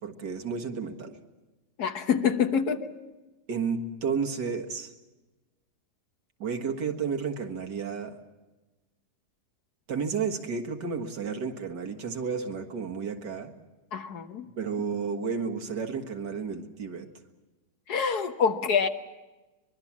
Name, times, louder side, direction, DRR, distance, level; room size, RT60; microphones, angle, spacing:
voice 1, 0.0-1.2 3.5-4.9 6.4-8.2 9.9-13.5 14.6-17.1, right 5 dB, 85° right, 3 dB, 2.3 m, -32 dB
voice 2, 1.8-2.9 13.9-14.5 17.9-18.9, left 6 dB, 70° left, 7 dB, 1.7 m, -26 dB
24.0 x 22.5 x 7.3 m, 1.1 s
omnidirectional pair, 1.8 m